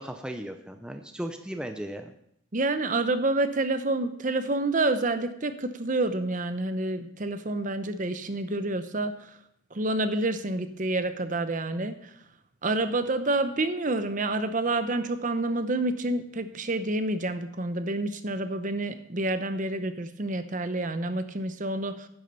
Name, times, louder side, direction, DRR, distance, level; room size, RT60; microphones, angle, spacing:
voice 1, 0.0-2.1, right 1 dB, 5° right, 5 dB, 0.6 m, -36 dB
voice 2, 2.5-9.3 9.7-12.1 12.6-22.1, right 2 dB, 40° right, 10 dB, 0.8 m, -28 dB
10.5 x 7.3 x 6.8 m, 0.73 s
head